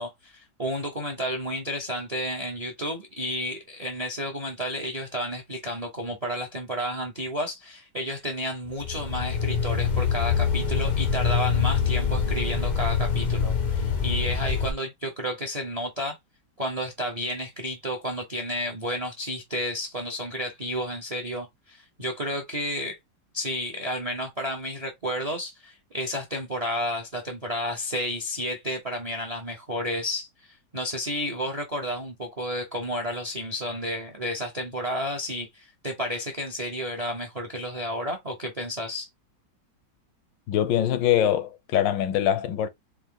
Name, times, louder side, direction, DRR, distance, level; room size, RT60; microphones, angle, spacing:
voice 1, 0.0-16.2 16.6-23.0 23.3-39.1, equal, 30° right, 0.7 m, -31 dB
sound 1, 8.7-14.7, left 6 dB, 55° left, 0.4 m, -25 dB
voice 2, 40.5-42.7, left 11 dB, 80° left, 1.3 m, -23 dB
4.6 x 2.7 x 3.8 m
omnidirectional pair, 2.0 m